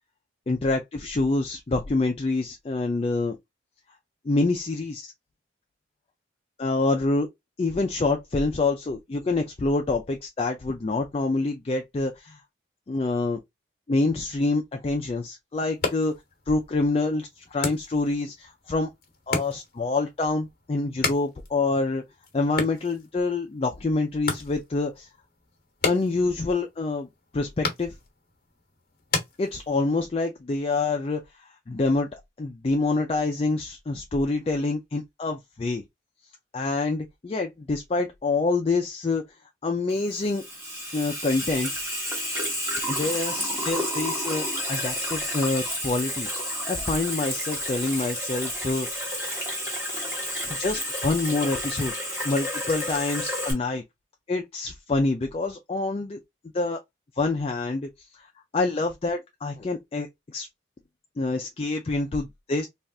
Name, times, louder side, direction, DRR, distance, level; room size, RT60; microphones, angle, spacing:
voice 1, 0.5-3.4 4.2-5.1 6.6-7.3 7.6-12.4 12.9-13.4 13.9-16.1 16.5-18.9 19.3-22.0 22.3-25.1 25.8-27.1 27.3-27.9 29.4-35.8 36.5-39.2 39.6-40.4 40.9-41.7 42.9-46.3 46.7-48.9 49.1-49.2 50.4-51.9 52.2-53.8 54.3-56.2 56.5-56.8 57.2-58.3 58.5-60.5 61.2-62.7, left 3 dB, 30° left, 0.3 m, -26 dB
sound 1, 15.6-30.1, left 4 dB, 50° left, 0.9 m, -35 dB
Water tap faucet / Sink (filling or washing), 39.9-53.5, equal, 15° right, 1.2 m, -30 dB
3.2 x 2.4 x 2.6 m
head